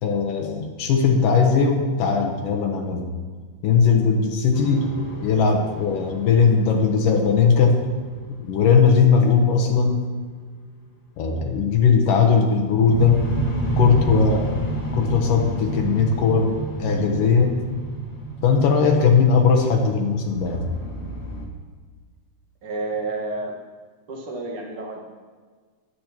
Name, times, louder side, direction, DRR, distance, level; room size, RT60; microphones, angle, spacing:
voice 1, 0.0-3.1 3.6-4.9 5.2-7.8 8.4-10.0 11.2-13.2 13.8-14.5 15.0-17.6 18.4-20.7, left 5 dB, 80° left, 2 dB, 2.7 m, -19 dB
sound 1, 4.5-9.3 12.8-21.5, right 1 dB, 30° left, 1.2 m, -30 dB
voice 2, 22.6-23.6 24.1-25.0, right 2 dB, 50° right, -1 dB, 2.3 m, -30 dB
15.5 x 11.5 x 3.0 m, 1.5 s
omnidirectional pair, 3.7 m